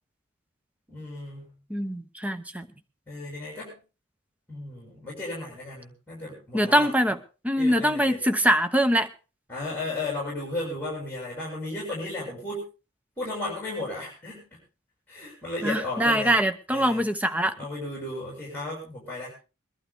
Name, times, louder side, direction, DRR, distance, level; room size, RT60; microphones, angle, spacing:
voice 1, 0.9-1.6 3.1-3.8 4.5-6.9 7.6-8.2 9.5-12.6 13.2-14.6 15.1-16.4 16.7-17.0 17.6-19.3, left 2 dB, 10° left, -2 dB, 6.3 m, -34 dB
voice 2, 1.7-2.7 6.5-7.2 7.4-9.1 15.6-17.6, equal, 5° right, 8 dB, 0.9 m, -23 dB
22.0 x 12.0 x 3.5 m, 0.32 s
head